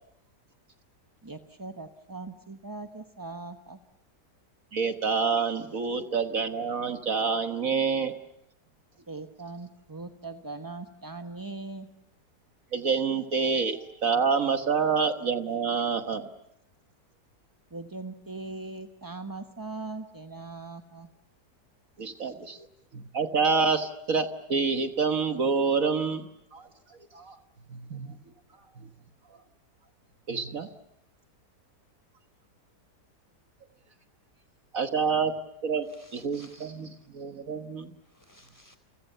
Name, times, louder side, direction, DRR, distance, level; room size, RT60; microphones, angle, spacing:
voice 1, 1.2-3.8 9.1-11.9 17.7-21.1, right 3 dB, 15° right, 7 dB, 0.8 m, -40 dB
voice 2, 4.7-8.1 12.7-16.3 22.0-22.6 22.9-26.7 27.1-27.4 27.7-28.1 30.3-30.7 34.7-35.3 35.6-35.9 36.1-36.9 37.1-37.9, right 5 dB, 55° right, 8 dB, 1.6 m, -27 dB
voice 3, 35.9-36.9 38.0-38.8, equal, 10° left, 9 dB, 4.2 m, -58 dB
29.5 x 29.0 x 6.8 m, 0.79 s
omnidirectional pair, 1.8 m